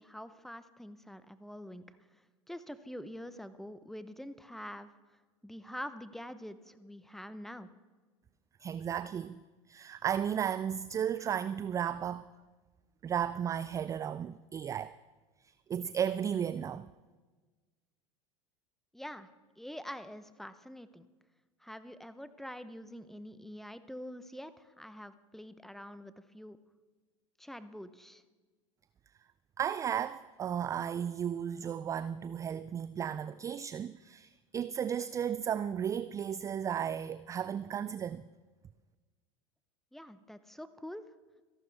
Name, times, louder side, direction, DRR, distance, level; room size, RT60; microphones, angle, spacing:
voice 1, 0.0-1.8 2.1-2.2 2.5-4.9 5.4-7.7 18.9-19.3 19.6-21.1 21.6-26.6 27.4-28.2 39.9-41.0, equal, ahead, 0.8 m, -45 dB
voice 2, 8.6-12.3 13.0-15.0 15.7-16.9 29.6-38.2, right 9 dB, 20° right, 0.3 m, -34 dB
27.0 x 11.5 x 3.5 m
figure-of-eight pair, 80°, 16 cm